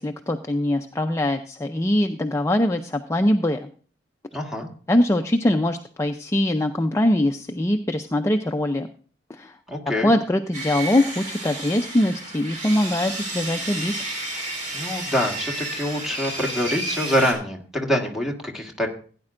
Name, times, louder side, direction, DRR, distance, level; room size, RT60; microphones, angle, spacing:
voice 1, 0.0-3.7 4.9-8.9 9.3-9.6 10.0-13.9, left 1 dB, 15° left, 5 dB, 0.4 m, -22 dB
voice 2, 4.3-4.7 9.7-10.1 14.7-18.9, equal, ahead, 1 dB, 1.5 m, -25 dB
Sawing, 10.5-17.3, right 2 dB, 45° right, 3.1 m, -31 dB
16.5 x 9.6 x 2.5 m, 0.42 s
head